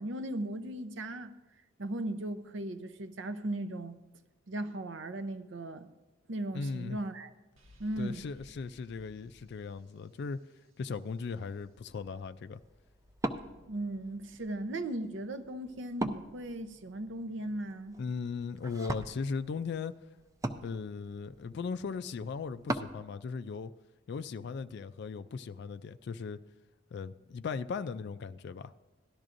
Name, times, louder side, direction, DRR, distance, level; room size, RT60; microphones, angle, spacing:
voice 1, 0.0-1.3 1.8-4.0 4.5-5.9 6.3-7.3 7.8-8.2 13.7-18.0, right 1 dB, 65° right, 0.7 m, -37 dB
voice 2, 6.5-7.0 8.0-10.4 10.8-12.6 18.0-19.9 20.6-23.7 24.1-26.4 26.9-28.7, left 5 dB, 55° left, 0.3 m, -38 dB
sound 1, 7.6-11.3, left 1 dB, 90° right, 1.2 m, -60 dB
Wood, 11.5-23.0, right 1 dB, 15° right, 0.4 m, -42 dB
17.0 x 12.0 x 2.5 m
head